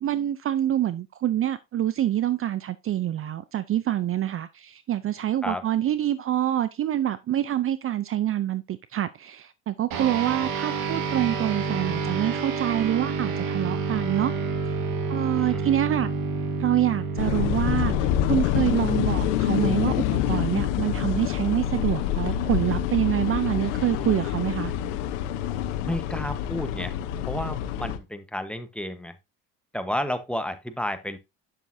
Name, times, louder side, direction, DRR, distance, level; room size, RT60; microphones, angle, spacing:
voice 1, 0.0-14.3 14.7-14.8 15.1-16.1 16.6-24.7, right 12 dB, 40° right, 0.6 m, -26 dB
sound 1, 9.9-19.7, right 4 dB, 75° right, 1.9 m, -29 dB
voice 2, 15.3-15.6 25.8-27.0 27.2-29.2 29.7-31.2, left 1 dB, 5° left, 1.1 m, -31 dB
sound 2, 17.2-28.0, left 11 dB, 80° left, 1.0 m, -26 dB
8.4 x 7.0 x 2.7 m
supercardioid pair, 80°, 35 cm